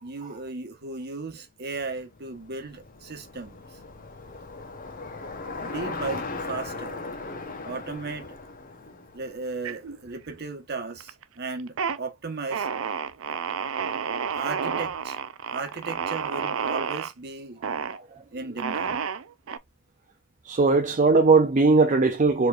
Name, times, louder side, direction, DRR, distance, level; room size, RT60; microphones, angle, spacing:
voice 1, 0.0-3.8 5.6-7.0 7.6-8.4 9.1-12.7 14.3-15.2 15.5-17.6 18.3-19.0, right 3 dB, 55° right, 1.1 m, -36 dB
Bicycle, 1.8-10.2, left 3 dB, 45° left, 0.9 m, -38 dB
sound 1, 9.6-10.4 10.7-11.2 11.6-12.0 12.5-17.1 17.6-18.0 18.6-19.6, right 6 dB, 85° right, 0.5 m, -30 dB
voice 2, 20.5-22.5, right 3 dB, 40° right, 0.6 m, -19 dB
4.6 x 3.2 x 2.4 m
head